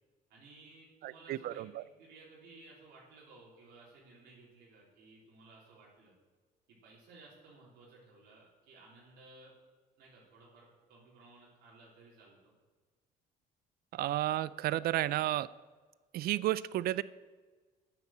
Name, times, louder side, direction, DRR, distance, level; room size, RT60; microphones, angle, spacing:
voice 1, 0.3-6.1 6.8-9.5 10.0-12.5, right 3 dB, 80° right, -6 dB, 3.8 m, -57 dB
voice 2, 1.0-1.8 13.9-15.5 16.1-17.0, right 14 dB, 65° right, 18 dB, 0.4 m, -32 dB
10.0 x 8.0 x 7.4 m, 1.4 s
cardioid pair, 110°, 17 cm